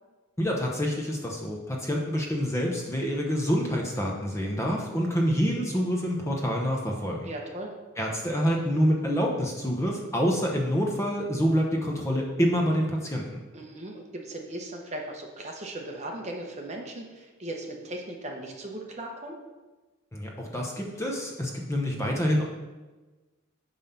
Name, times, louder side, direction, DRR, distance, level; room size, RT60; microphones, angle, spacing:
voice 1, 0.4-7.3 8.0-13.4 20.1-22.4, equal, 15° left, -1 dB, 0.8 m, -27 dB
voice 2, 7.2-7.7 13.5-19.4, right 1 dB, 35° right, 1 dB, 0.9 m, -38 dB
5.5 x 5.3 x 5.7 m, 1.2 s
head